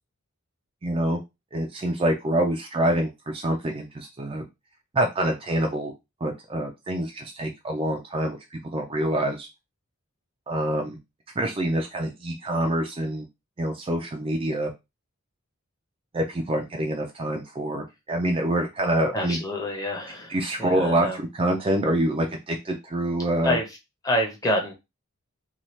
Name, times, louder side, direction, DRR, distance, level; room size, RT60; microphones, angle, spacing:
voice 1, 0.8-1.2 1.5-4.5 4.9-5.9 6.2-9.5 10.5-11.0 11.4-13.3 13.6-14.7 16.1-19.4 20.3-23.6, right 1 dB, 25° right, 2 dB, 0.4 m, -26 dB
voice 2, 19.1-21.2 23.4-23.7 24.0-24.7, equal, 15° left, 1 dB, 0.7 m, -27 dB
2.8 x 2.3 x 3.1 m, 0.23 s
head